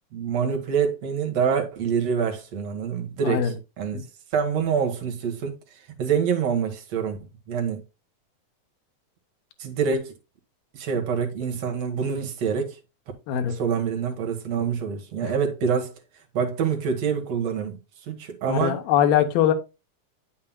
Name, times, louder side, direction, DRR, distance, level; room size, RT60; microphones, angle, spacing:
voice 1, 0.1-4.1 4.3-7.2 7.5-7.8 9.6-10.1 10.7-12.8 13.5-15.9 16.3-18.8, right 6 dB, 55° right, 2.3 m, -26 dB
voice 2, 3.2-3.5 3.9-4.0 13.3-13.6 15.2-15.3 18.5-19.5, left 10 dB, 90° left, 2.8 m, -22 dB
8.6 x 7.3 x 2.3 m
omnidirectional pair, 4.0 m